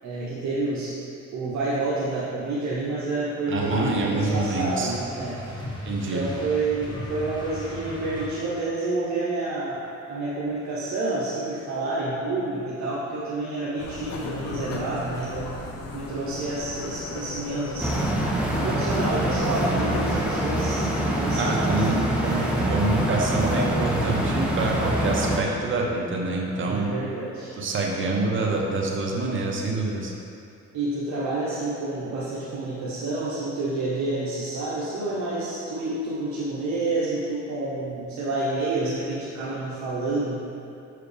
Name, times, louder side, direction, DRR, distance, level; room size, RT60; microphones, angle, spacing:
voice 1, 0.0-1.0 1.3-5.7 6.0-9.8 10.1-18.1 18.6-22.7 26.6-27.5 30.7-40.4, right 2 dB, 70° right, -8 dB, 0.9 m, -29 dB
sound 1, 3.5-8.7, left 1 dB, 15° left, 1.1 m, -36 dB
voice 2, 3.5-4.9 5.8-6.2 21.4-26.9 27.6-30.1, right 2 dB, 40° right, -1 dB, 0.9 m, -26 dB
sound 2, 13.8-20.2, left 3 dB, 55° left, 0.7 m, -35 dB
sound 3, 17.8-25.4, right 1 dB, 5° right, 0.8 m, -25 dB
5.9 x 4.8 x 3.3 m, 2.6 s
cardioid pair, 90°, 30 cm